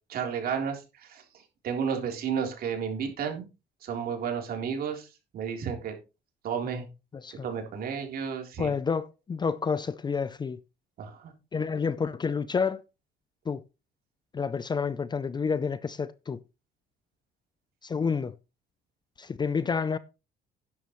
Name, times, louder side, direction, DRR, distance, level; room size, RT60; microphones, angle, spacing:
voice 1, 0.1-1.2 1.6-3.5 3.8-6.0 6.4-6.8 7.4-8.7 11.0-11.3, right 7 dB, 65° right, 3.7 m, -32 dB
voice 2, 8.6-10.6 11.5-12.8 13.5-13.6 14.3-16.4 17.8-18.3 19.2-20.0, left 5 dB, 25° left, 0.6 m, -29 dB
11.5 x 10.5 x 3.2 m
cardioid pair, 110°, 17 cm